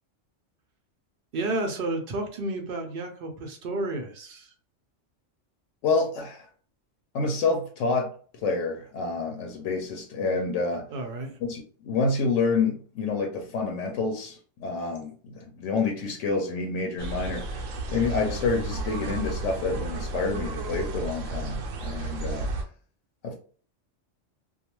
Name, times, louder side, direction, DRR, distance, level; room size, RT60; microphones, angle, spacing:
voice 1, 1.3-4.5 10.9-11.4, right 2 dB, 60° right, 0.6 m, -31 dB
voice 2, 5.8-6.5 7.1-8.1 8.4-10.9 11.4-17.7 17.9-22.5 23.2-23.4, left 4 dB, 85° left, 0.9 m, -28 dB
sound 1, 17.0-22.6, right 2 dB, 90° right, 0.9 m, -32 dB
2.3 x 2.3 x 2.9 m
omnidirectional pair, 1.3 m